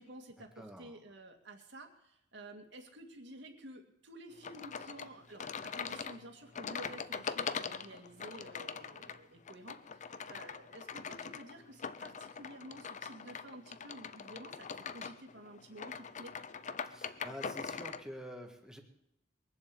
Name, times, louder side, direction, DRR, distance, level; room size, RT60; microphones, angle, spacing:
voice 1, 0.0-16.3, right 1 dB, 65° right, 3 dB, 2.3 m, -51 dB
voice 2, 0.6-1.0 16.8-18.8, equal, 5° right, 3 dB, 1.8 m, -47 dB
sound 1, 4.4-18.0, left 6 dB, 40° left, 0.6 m, -42 dB
22.5 x 7.5 x 7.9 m, 0.81 s
head